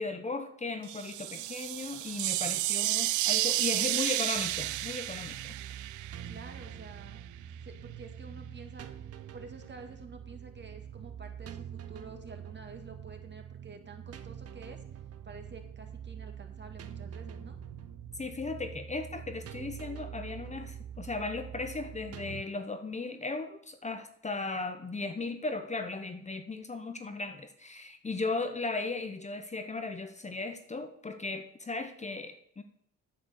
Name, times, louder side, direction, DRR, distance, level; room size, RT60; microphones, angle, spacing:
voice 1, 0.0-5.5 18.2-32.6, left 3 dB, 25° left, 7 dB, 0.9 m, -36 dB
sound 1, 0.8-6.7, right 16 dB, 80° right, 0.5 m, -31 dB
voice 2, 3.9-4.3 6.2-7.2 7.6-8.9 9.3-14.8 15.2-17.6, right 4 dB, 35° right, 5 dB, 2.0 m, -49 dB
sound 2, 4.3-22.4, right 9 dB, 55° right, 0.9 m, -45 dB
9.0 x 7.6 x 6.6 m, 0.69 s
cardioid pair, 90°, 30 cm